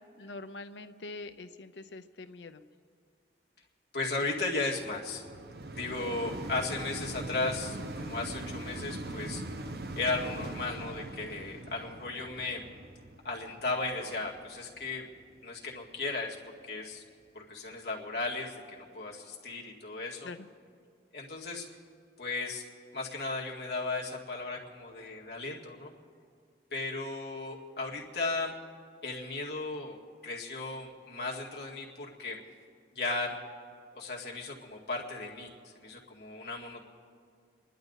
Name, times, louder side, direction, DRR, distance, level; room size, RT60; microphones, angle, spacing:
voice 1, 0.2-2.6 20.2-20.5, left 3 dB, 90° left, 9 dB, 0.7 m, -44 dB
voice 2, 3.9-5.2 5.7-9.4 10.0-12.6 13.2-15.0 15.4-16.4 16.6-17.0 17.3-20.3 21.1-21.7 22.2-22.6 22.9-25.9 26.7-28.5 29.0-30.0 30.2-32.4 32.9-33.4 33.9-36.9, left 3 dB, 65° left, -2 dB, 2.0 m, -35 dB
sound 1, 4.2-15.5 16.1-16.2, right 2 dB, 60° right, 0.8 m, -42 dB
28.5 x 11.0 x 4.0 m, 2.2 s
head